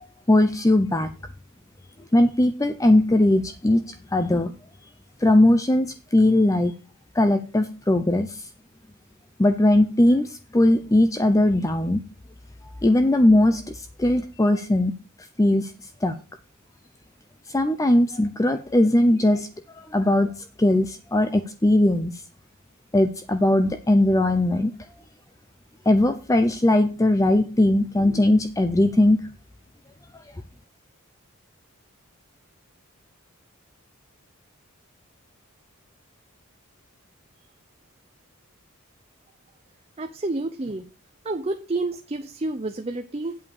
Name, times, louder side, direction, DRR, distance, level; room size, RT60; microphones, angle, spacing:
voice 1, 0.3-1.1 2.1-4.5 5.2-6.7 7.1-8.5 9.4-12.0 12.8-14.9 15.4-15.7 16.0-16.1 17.5-22.2 22.9-24.7 25.9-29.2, left 1 dB, 15° left, 8 dB, 0.5 m, -20 dB
voice 2, 40.0-40.9 41.2-43.4, right 2 dB, 30° right, 6 dB, 0.6 m, -29 dB
8.4 x 5.0 x 7.0 m, 0.33 s
head